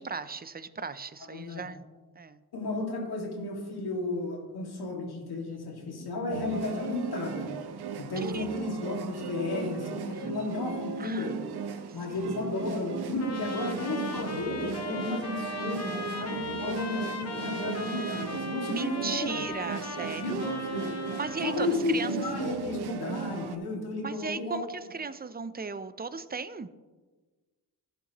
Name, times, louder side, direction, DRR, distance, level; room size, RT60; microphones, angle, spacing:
voice 1, 0.0-1.8 2.2-2.4 8.2-8.5 11.0-12.2 18.7-20.5 21.2-21.7 21.9-22.1 24.0-26.7, right 5 dB, 25° right, 13 dB, 0.5 m, -36 dB
voice 2, 1.3-1.7 2.5-7.5 8.0-11.3 11.9-19.4 20.2-20.9 21.4-24.7, left 2 dB, 75° left, 0 dB, 2.2 m, -33 dB
sound 1, 6.3-23.6, right 6 dB, 85° right, 0.7 m, -36 dB
Trumpet, 13.2-21.8, left 4 dB, 40° left, 1.1 m, -39 dB
14.5 x 6.8 x 3.0 m, 1.3 s
cardioid pair, 80°, 38 cm